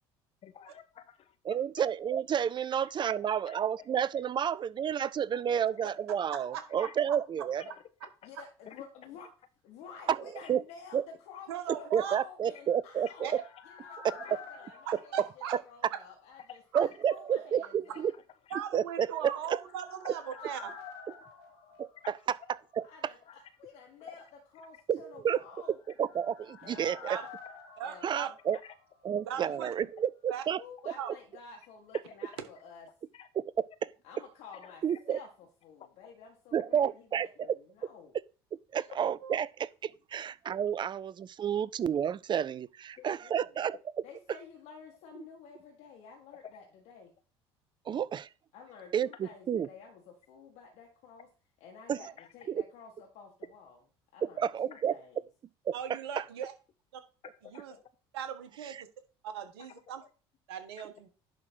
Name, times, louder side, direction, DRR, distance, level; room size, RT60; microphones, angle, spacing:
voice 1, 0.4-1.4 1.8-1.9 2.8-3.9 5.6-5.7 6.8-6.9 7.6-8.1 8.7-8.8 9.1-9.3 10.3-10.5 13.0-13.5 14.0-14.4 16.4-16.6 17.9-18.6 23.3-23.4 24.0-24.2 28.5-28.7 33.1-33.3 34.6-35.2 36.0-36.1 37.4-37.5 38.8-39.0 43.0-43.1 52.2-52.3 54.7-54.8 57.4-57.8 59.6-60.1 60.5-60.9, left 9 dB, 50° left, 1.4 m, -52 dB
voice 2, 1.5-7.6 10.1-10.2 10.5-10.6 10.9-11.0 11.9-13.3 16.7-18.1 18.7-19.3 21.8-21.9 24.9-25.4 26.0-27.2 28.0-28.6 29.0-30.6 34.8-35.2 36.5-37.3 38.7-43.8 47.9-48.3 48.9-49.7 51.9-52.0 52.5-52.6 54.2-54.9 55.7-56.0 58.7-58.8, right 8 dB, 35° right, 0.5 m, -30 dB
voice 3, 6.3-7.2 11.5-12.2 13.2-13.3 14.8-15.5 18.5-20.7 27.0-27.2 27.8-28.3 29.2-29.7 30.3-30.4 31.0-31.1 39.2-39.3 40.4-40.5 55.7-56.5 56.9-57.0 57.5-57.7 58.1-58.8 59.2-60.0 60.5-61.1, right 9 dB, 80° right, 1.5 m, -39 dB
voice 4, 8.2-9.3 9.6-13.3 13.6-18.1 22.8-24.2 24.5-25.8 26.6-27.2 27.8-28.3 29.3-29.8 30.6-32.9 34.0-38.1 43.2-43.6 44.0-47.1 48.5-51.3 51.6-53.8 54.1-55.3, left 5 dB, 65° left, 1.9 m, -51 dB
sound 1, 12.6-16.4 16.7-16.8 19.2-22.9 23.2-23.3 25.5-29.4 29.6-29.7, left 5 dB, 80° left, 1.9 m, -50 dB
10.5 x 3.8 x 4.5 m
hypercardioid pair, 65°, 13 cm